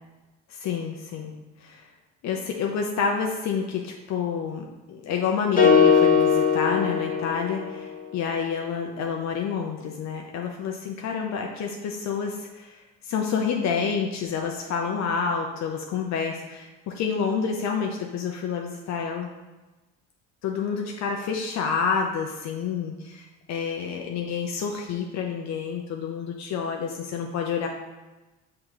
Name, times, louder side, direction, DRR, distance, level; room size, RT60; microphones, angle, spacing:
voice 1, 0.5-1.3 1.6-1.9 2.2-19.3 20.4-27.7, left 6 dB, 60° left, 1 dB, 0.8 m, -29 dB
sound 1, 5.6-7.9, left 6 dB, 25° left, 1.3 m, -20 dB
6.2 x 3.8 x 4.7 m, 1.1 s
cardioid pair, 95°, 30 cm